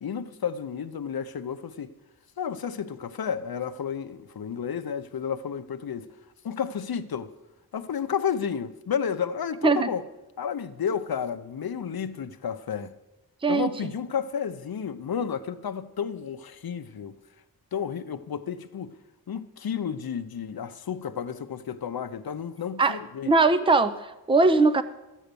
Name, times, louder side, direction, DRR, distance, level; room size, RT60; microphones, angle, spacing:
voice 1, 0.0-1.9 2.4-6.1 6.4-7.3 7.7-10.0 10.4-12.9 13.5-17.2 17.7-19.0 19.3-23.3, left 7 dB, 70° left, 0.7 m, -31 dB
voice 2, 23.3-24.8, right 3 dB, 15° right, 0.6 m, -20 dB
12.5 x 9.1 x 6.8 m
wide cardioid pair, 70°, 38 cm